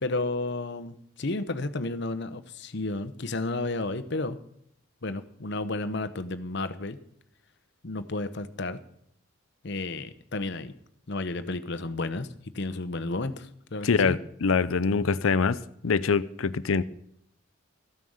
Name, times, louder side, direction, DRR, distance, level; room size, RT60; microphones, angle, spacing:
voice 1, 0.0-4.4 5.0-7.0 7.8-8.8 9.6-10.7 11.1-12.3 12.5-14.2, left 2 dB, 55° left, 12 dB, 0.9 m, -32 dB
voice 2, 13.8-15.6 15.8-16.8, left 5 dB, 75° left, 16 dB, 0.6 m, -24 dB
14.0 x 9.3 x 6.4 m, 0.69 s
head